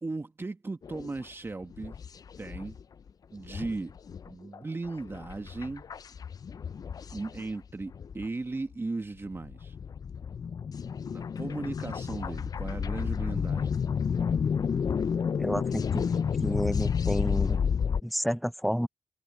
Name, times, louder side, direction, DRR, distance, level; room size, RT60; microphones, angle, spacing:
voice 1, 0.0-2.0 2.4-2.8 3.3-3.9 4.2-5.8 7.1-9.8 11.1-14.0, right 3 dB, 30° right, 1.5 m, -37 dB
sound 1, 0.8-1.2 1.6-2.8 3.1-3.2 3.4-8.3 8.7-8.8 9.2-18.0, left 6 dB, 55° left, 0.5 m, -31 dB
voice 2, 15.4-16.1 16.4-17.6 18.0-18.9, equal, ahead, 0.5 m, -30 dB
cardioid pair, 60°, 8 cm